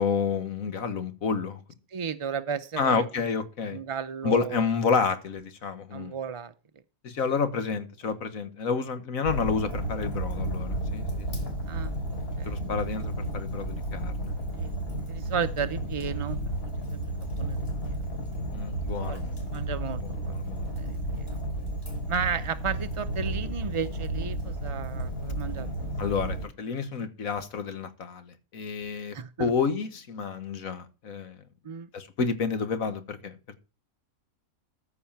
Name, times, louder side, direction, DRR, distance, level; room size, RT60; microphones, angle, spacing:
voice 1, 0.0-1.6 2.8-3.8 4.2-6.2 7.0-11.3 12.5-14.3 18.5-19.2 20.0-20.7 26.0-31.4 31.9-33.6, left 5 dB, 75° left, 10 dB, 1.8 m, -30 dB
voice 2, 1.9-3.1 3.7-4.7 5.9-6.5 11.6-11.9 12.4-12.6 14.5-14.7 15.1-17.0 17.4-18.0 19.0-19.2 19.5-20.3 20.6-21.4 22.1-25.7 26.1-26.2 29.1-29.5 31.6-31.9, right 6 dB, 55° right, 11 dB, 0.3 m, -34 dB
Fire, 9.2-26.5, right 1 dB, 40° left, 3.6 m, -32 dB
14.0 x 4.9 x 5.7 m, 0.33 s
omnidirectional pair, 1.5 m